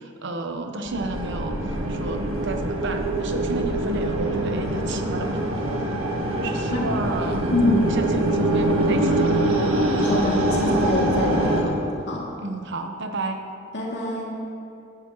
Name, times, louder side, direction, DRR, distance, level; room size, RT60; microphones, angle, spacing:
voice 1, 0.0-1.6 1.9-5.8 6.3-9.4 12.4-13.4, right 2 dB, 60° right, 5 dB, 0.9 m, -32 dB
sound 1, 0.9-11.6, right 1 dB, 80° right, 1.6 m, -24 dB
voice 2, 7.5-7.9 10.0-11.7 12.1-12.3 13.7-14.3, left 1 dB, 60° left, -4 dB, 2.5 m, -24 dB
15.5 x 11.0 x 3.1 m, 2.6 s
head